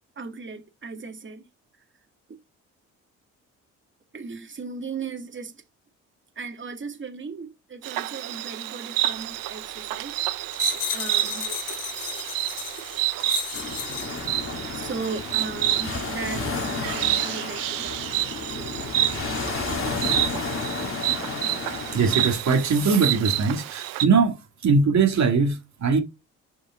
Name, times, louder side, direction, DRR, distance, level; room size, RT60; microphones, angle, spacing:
voice 1, 0.2-1.5 4.1-5.5 6.4-10.2 10.9-11.5 14.7-18.0 18.5-19.2, right 4 dB, 35° right, 2.3 m, -37 dB
Insect, 7.8-24.1, right 13 dB, 80° right, 1.0 m, -29 dB
sound 1, 10.5-14.3 14.9-15.1, left 8 dB, 70° left, 2.4 m, -33 dB
sound 2, 13.5-22.3, left 4 dB, 40° left, 2.8 m, -32 dB
voice 2, 21.9-24.4 24.6-26.0, right 4 dB, 55° right, 2.3 m, -21 dB
8.1 x 5.4 x 3.8 m
supercardioid pair, 60°, 33 cm